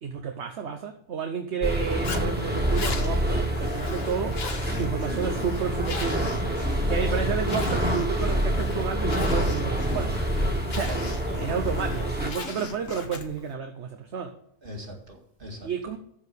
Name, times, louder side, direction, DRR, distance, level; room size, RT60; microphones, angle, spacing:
voice 1, 0.0-4.4 4.8-6.3 6.9-10.2 10.7-11.0 11.4-14.3 15.6-16.0, right 6 dB, 65° right, 5 dB, 1.2 m, -31 dB
sound 1, 1.6-12.3, right 1 dB, 10° right, 1.7 m, -27 dB
Zipper (clothing), 2.0-13.5, left 4 dB, 55° left, 1.4 m, -38 dB
voice 2, 10.8-12.1 14.6-15.6, equal, 45° right, 1 dB, 2.3 m, -40 dB
13.5 x 4.8 x 6.9 m, 0.66 s
omnidirectional pair, 1.2 m